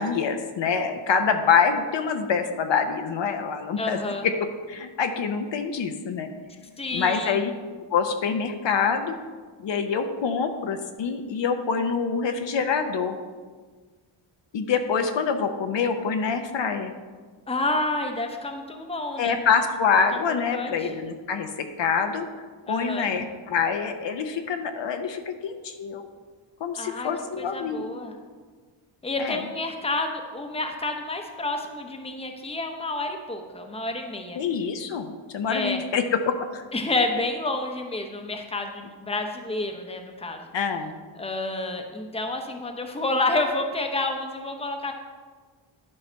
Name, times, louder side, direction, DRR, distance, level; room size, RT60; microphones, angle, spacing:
voice 1, 0.0-4.3 4.7-6.3 6.9-7.5 7.9-9.2 9.6-13.2 14.5-16.9 19.2-22.3 22.7-26.1 26.6-28.0 29.2-29.5 34.4-36.6 40.5-40.9, left 6 dB, 65° left, 6 dB, 0.8 m, -26 dB
voice 2, 3.8-4.3 6.8-7.4 17.5-19.4 20.5-20.9 22.7-23.1 26.8-27.1 27.4-28.2 29.0-34.4 35.5-35.8 36.7-40.5 41.2-44.9, left 2 dB, 10° left, 4 dB, 0.8 m, -29 dB
11.0 x 5.5 x 4.5 m, 1.5 s
wide cardioid pair, 115°, 49 cm